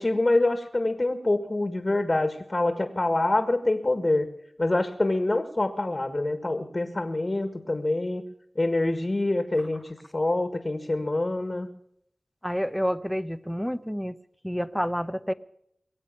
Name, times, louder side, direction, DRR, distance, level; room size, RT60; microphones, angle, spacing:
voice 1, 0.0-4.3 4.6-8.2 8.5-11.7, left 2 dB, 40° left, 8 dB, 1.7 m, -26 dB
voice 2, 12.4-14.2 14.4-15.3, equal, ahead, 13 dB, 0.9 m, -29 dB
23.0 x 8.2 x 6.9 m, 0.73 s
cardioid pair, 50°, 0 cm